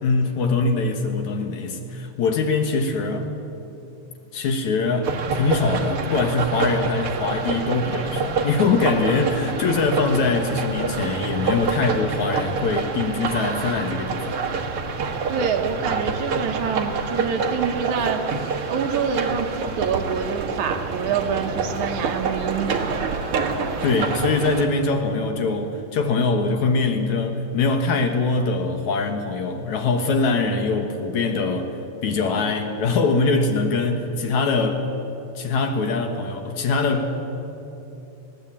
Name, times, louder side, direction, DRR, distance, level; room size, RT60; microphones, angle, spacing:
voice 1, 0.0-3.3 4.3-14.4 23.8-31.7 32.0-34.9 35.4-37.2, left 3 dB, 65° left, 5 dB, 2.5 m, -23 dB
sound 1, 5.0-24.7, right 5 dB, 50° right, 1.9 m, -27 dB
voice 2, 15.3-18.3 18.7-22.9, right 6 dB, 70° right, 5 dB, 2.3 m, -26 dB
20.0 x 17.0 x 8.6 m, 2.8 s
omnidirectional pair, 4.0 m